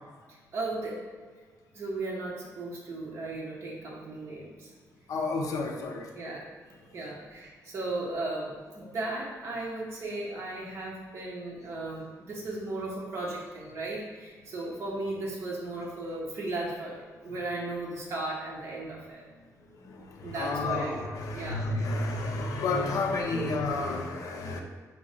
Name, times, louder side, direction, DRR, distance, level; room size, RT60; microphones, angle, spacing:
voice 1, 0.5-1.0 1.7-4.7 6.1-6.5 6.9-19.2 20.2-21.0 21.3-21.7 23.4-23.5, right 2 dB, 45° right, -4 dB, 0.8 m, -36 dB
voice 2, 5.1-6.3 7.0-7.1 8.8-8.9 17.2-17.4 19.7-24.6, left 3 dB, 65° left, 2 dB, 0.6 m, -31 dB
4.8 x 2.1 x 3.8 m, 1.5 s
wide cardioid pair, 175°, 6 cm